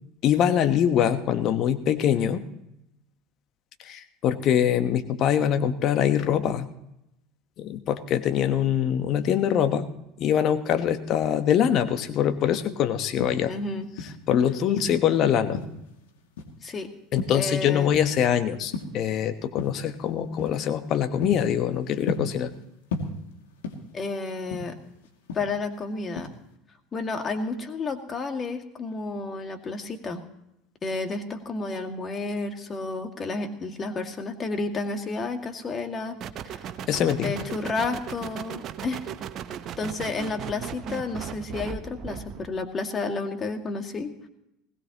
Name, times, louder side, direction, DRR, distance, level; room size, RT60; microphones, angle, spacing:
voice 1, 0.2-2.4 3.8-6.7 7.6-9.9 10.2-13.5 14.3-15.6 17.1-22.5 36.9-37.4, left 9 dB, 50° left, 10 dB, 1.3 m, -23 dB
sound 1, 13.0-14.3 14.7-16.0 16.4-16.7 17.2-18.3 18.6-19.1 19.6-19.9 20.4-20.6 21.0-22.6 22.9-24.0 24.3-25.8 26.2-26.5, left 3 dB, 70° left, 2.5 m, -33 dB
voice 2, 13.5-13.9 16.6-16.9 17.3-17.9 23.9-24.8 25.3-26.3 26.9-30.2 30.8-36.2 36.5-36.6 37.2-39.0 39.8-44.3, left 3 dB, 30° left, 5 dB, 2.2 m, -31 dB
sound 2, 36.2-42.5, right 8 dB, 45° right, 1.1 m, -37 dB
20.0 x 18.0 x 3.0 m, 0.82 s
hypercardioid pair, 70°, 0 cm